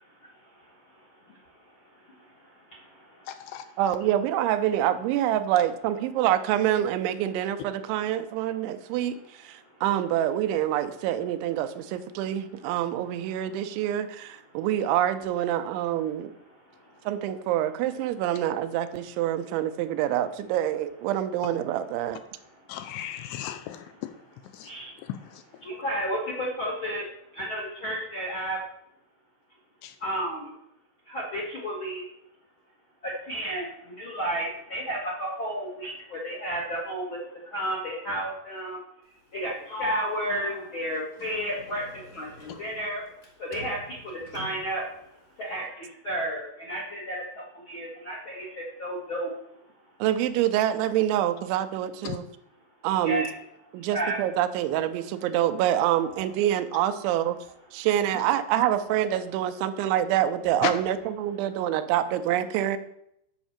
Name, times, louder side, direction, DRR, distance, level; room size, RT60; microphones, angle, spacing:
voice 1, 1.9-3.7 9.6-9.8 16.7-17.1 22.7-22.8 23.1-23.2 24.6-25.0 25.6-28.6 30.0-30.5 31.1-32.1 33.0-38.8 39.3-43.0 43.4-44.9 45.3-49.3 53.0-53.3 53.9-54.2, right 1 dB, 60° left, -3 dB, 1.3 m, -33 dB
voice 2, 3.3-3.6 22.7-24.1 24.5-24.7 25.0-25.4 29.8-30.0 52.0-52.2 60.6-60.7, left 12 dB, 80° left, 9 dB, 2.6 m, -34 dB
voice 3, 3.8-16.3 17.1-22.2 50.0-52.3 52.8-53.3 53.7-57.4 57.7-62.8, right 11 dB, 90° right, 11 dB, 3.1 m, -26 dB
Sliding door, 39.7-43.3 43.5-44.8, left 1 dB, 35° left, 1.3 m, -39 dB
9.1 x 5.2 x 7.2 m, 0.77 s
omnidirectional pair, 5.2 m